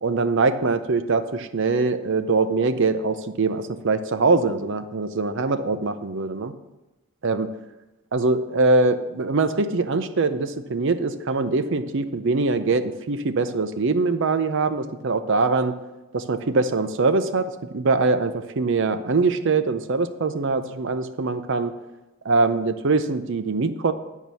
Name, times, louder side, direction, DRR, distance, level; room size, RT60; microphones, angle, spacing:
voice 1, 0.0-6.5 7.2-7.5 8.1-15.7 16.1-21.7 22.2-23.9, right 3 dB, 60° right, 11 dB, 0.6 m, -23 dB
10.5 x 4.6 x 6.8 m, 1.1 s
head